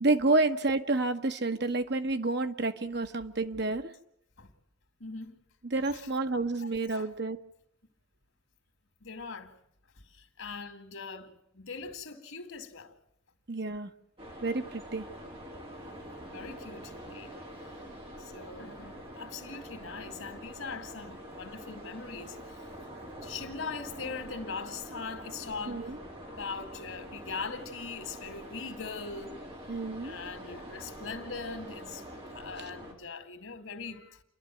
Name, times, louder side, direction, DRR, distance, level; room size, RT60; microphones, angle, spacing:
voice 1, 0.0-3.9 5.7-7.4 13.5-13.9 14.4-15.0 25.7-26.0 29.7-30.2, right 2 dB, 55° right, 1.2 m, -29 dB
voice 2, 5.0-5.4 5.8-6.1 6.6-7.1 9.0-9.6 10.0-12.9 15.7-15.8 16.1-17.4 17.7-17.8 18.2-22.7 23.2-29.3 30.0-34.2, left 4 dB, 90° left, 2.3 m, -41 dB
sound 1, 14.2-32.9, equal, 30° right, 4.6 m, -45 dB
29.0 x 12.0 x 9.2 m
head